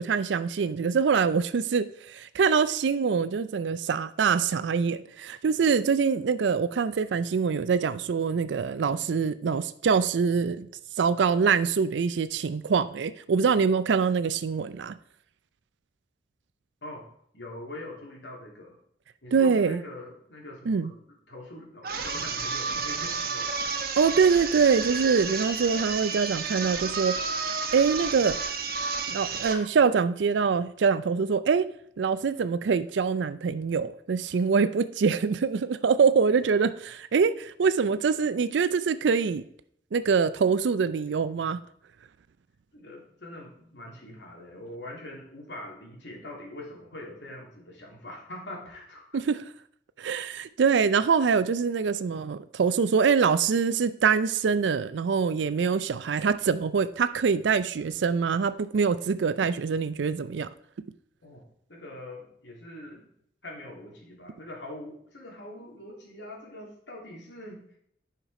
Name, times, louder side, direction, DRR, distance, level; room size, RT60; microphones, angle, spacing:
voice 1, 0.0-10.7 11.0-15.0 19.3-19.8 20.7-20.9 24.0-27.2 27.7-28.5 29.1-31.6 32.0-39.5 39.9-41.6 49.1-49.4 50.0-60.5, right 5 dB, 85° right, 0.4 m, -24 dB
voice 2, 17.3-18.8 19.2-23.5 40.4-40.6 41.0-41.1 42.7-49.2 61.2-61.4 61.7-63.1 63.4-67.8, left 1 dB, 80° left, 3.0 m, -43 dB
sound 1, 21.8-29.7, right 5 dB, 55° right, 1.0 m, -31 dB
10.0 x 5.8 x 4.9 m
head